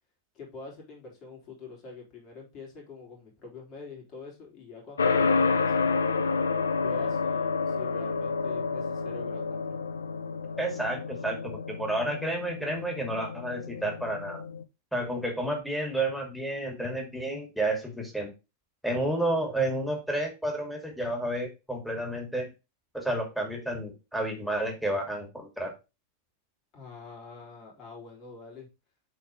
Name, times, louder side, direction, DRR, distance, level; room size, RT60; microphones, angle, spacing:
voice 1, 0.3-6.0 6.8-9.8 26.7-28.7, left 3 dB, 35° left, -1 dB, 3.6 m, -45 dB
sound 1, 5.0-14.6, left 4 dB, 70° left, 0.6 m, -29 dB
voice 2, 10.6-14.4 14.9-18.3 18.8-22.5 22.9-25.7, right 1 dB, ahead, 1 dB, 2.5 m, -31 dB
7.1 x 4.2 x 4.6 m, 0.26 s
figure-of-eight pair, 90°, 0 cm